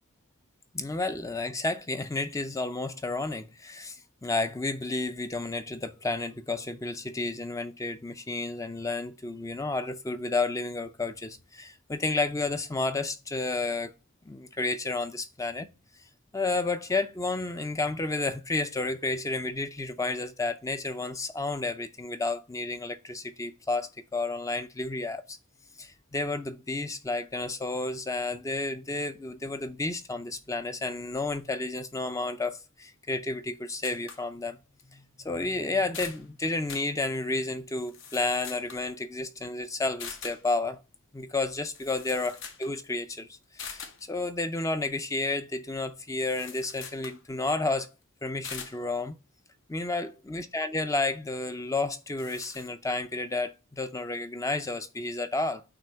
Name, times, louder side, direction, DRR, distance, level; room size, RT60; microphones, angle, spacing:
voice 1, 0.7-13.9 14.3-15.7 16.3-25.4 25.8-34.6 34.9-40.8 41.1-43.3 43.5-47.9 48.2-49.1 49.7-55.6, left 3 dB, 15° left, 0.4 m, -31 dB
sound 1, 33.8-34.2 34.8-34.9 35.4-35.5 35.8-36.2 36.7-36.9 37.7-38.9 40.0-40.4 41.5-41.6 41.7-42.7 43.0-43.1 43.6-44.0 46.2-47.2 48.4-48.8 51.8-51.9 52.2-52.7, left 6 dB, 60° left, 1.0 m, -43 dB
8.8 x 3.0 x 5.6 m
head